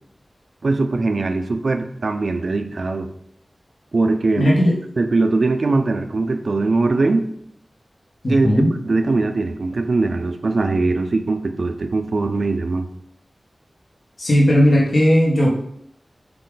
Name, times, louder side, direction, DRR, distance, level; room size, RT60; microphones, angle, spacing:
voice 1, 0.6-3.1 3.9-4.5 5.0-7.2 8.3-8.5 8.9-12.9, right 3 dB, 70° right, 7 dB, 0.6 m, -21 dB
voice 2, 4.4-4.8 8.2-8.7 14.2-15.5, equal, 65° left, -4 dB, 1.5 m, -16 dB
6.7 x 3.7 x 3.9 m, 0.72 s
wide cardioid pair, 85°, 0 cm